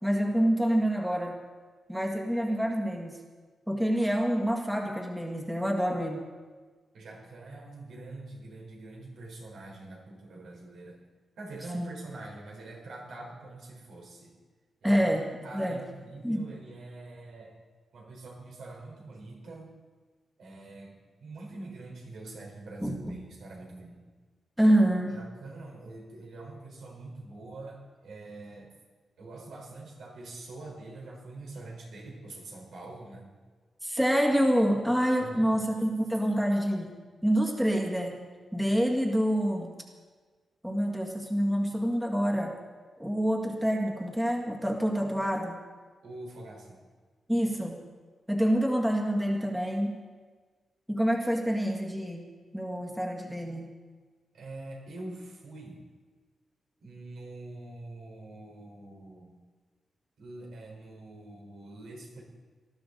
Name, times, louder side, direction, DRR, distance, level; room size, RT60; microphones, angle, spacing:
voice 1, 0.0-1.4 1.9-3.2 3.7-6.2 11.7-11.9 14.8-15.2 15.5-15.8 16.2-16.5 22.8-23.2 24.6-25.2 33.8-36.9 37.2-38.2 38.5-39.7 40.6-42.5 43.0-45.6 47.3-47.8 48.3-50.0 50.9-52.3 52.5-53.7, equal, 5° right, 0 dB, 1.9 m, -27 dB
voice 2, 6.9-11.0 11.4-14.3 14.8-15.0 15.4-17.6 17.9-19.7 20.4-20.9 21.2-24.1 25.1-28.7 29.2-33.3 35.2-35.5 46.0-46.8 54.3-55.8 56.8-59.4 60.2-62.2, right 2 dB, 75° right, -1 dB, 4.6 m, -44 dB
19.5 x 13.5 x 4.1 m, 1.4 s
wide cardioid pair, 145°, 0 cm